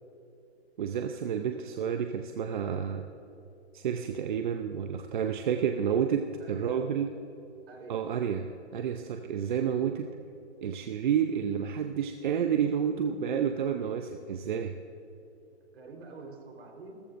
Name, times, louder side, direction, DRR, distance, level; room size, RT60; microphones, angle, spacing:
voice 1, 0.8-3.1 3.7-7.1 7.9-10.1 10.6-14.8, right 8 dB, 45° right, 6 dB, 0.7 m, -30 dB
voice 2, 6.4-6.9 7.7-8.1 15.7-17.0, right 3 dB, 65° right, 1 dB, 4.0 m, -47 dB
27.0 x 14.0 x 2.6 m, 2.8 s
hypercardioid pair, 155°, 34 cm